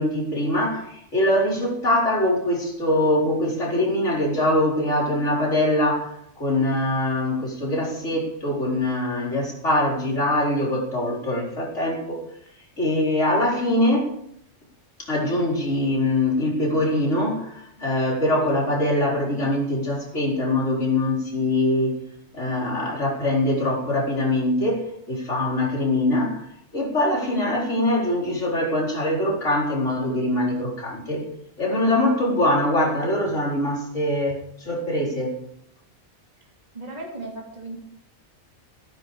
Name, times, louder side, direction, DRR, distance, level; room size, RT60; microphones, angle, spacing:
voice 1, 0.0-12.2 12.8-14.1 15.0-21.9 22.3-26.5 26.7-31.3 31.6-35.4, left 1 dB, 75° left, -2 dB, 4.6 m, -23 dB
voice 2, 36.7-37.8, right 2 dB, 35° right, -2 dB, 3.1 m, -36 dB
15.0 x 12.0 x 4.9 m, 0.71 s
omnidirectional pair, 1.3 m